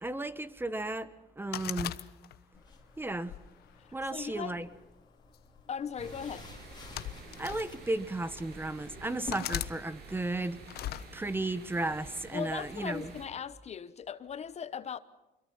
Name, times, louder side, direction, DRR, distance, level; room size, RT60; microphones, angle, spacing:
voice 1, 0.0-2.0 3.0-3.3 3.9-4.7 7.4-10.6 11.1-13.1, right 2 dB, 10° right, 1.2 m, -34 dB
sound 1, 1.5-2.6 3.2-4.4 5.3-5.6 6.6-7.7 8.4-8.5 9.3-9.7 10.7-11.1, left 13 dB, 70° left, 0.9 m, -38 dB
sound 2, 2.5-9.3, left 4 dB, 25° left, 3.0 m, -51 dB
voice 2, 4.1-4.6 5.7-6.5 12.3-15.0, left 7 dB, 40° left, 1.0 m, -38 dB
sound 3, 6.0-13.3, right 3 dB, 70° right, 6.7 m, -50 dB
25.5 x 23.0 x 5.6 m
cardioid pair, 110°, 17 cm